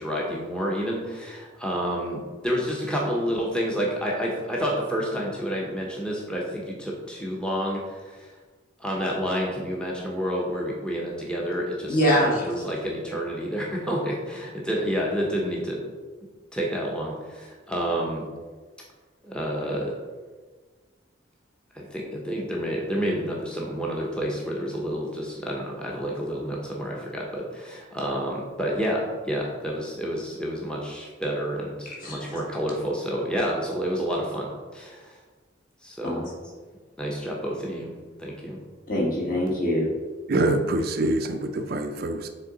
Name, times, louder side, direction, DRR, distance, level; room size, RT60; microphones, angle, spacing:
voice 1, 0.0-8.3 8.8-15.8 16.5-18.2 19.2-19.9 21.7-35.2 35.8-36.3 37.0-37.9 38.2-38.6, equal, 5° left, -3 dB, 0.7 m, -29 dB
voice 2, 11.9-12.5 32.0-32.4 36.0-36.2 38.9-39.9, equal, 45° left, -4 dB, 1.5 m, -23 dB
voice 3, 40.3-42.3, right 2 dB, 50° right, 6 dB, 0.4 m, -25 dB
6.5 x 3.7 x 3.8 m, 1.4 s
head